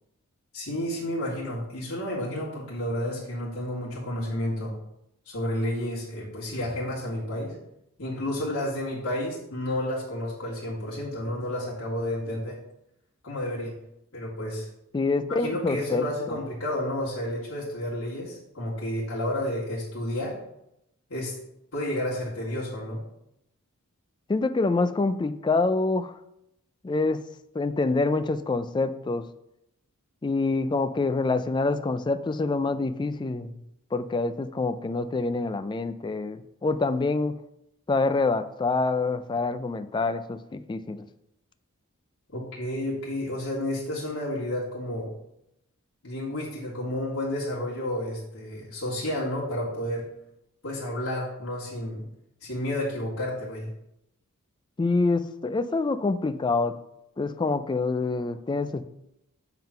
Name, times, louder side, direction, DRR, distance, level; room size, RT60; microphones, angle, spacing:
voice 1, 0.5-4.7 5.3-7.5 8.0-12.6 13.2-13.7 14.1-14.7 15.4-20.4 21.1-21.3 21.7-23.0 42.3-45.2 46.0-50.1 50.6-52.0 52.4-53.7, left 1 dB, 65° left, -7 dB, 1.9 m, -31 dB
voice 2, 14.9-16.4 24.3-26.2 26.8-27.2 27.5-29.3 30.2-33.6 33.9-37.4 37.9-41.1 54.8-56.8 57.2-58.8, left 3 dB, 20° left, 11 dB, 0.3 m, -26 dB
7.4 x 3.8 x 5.7 m, 0.83 s
head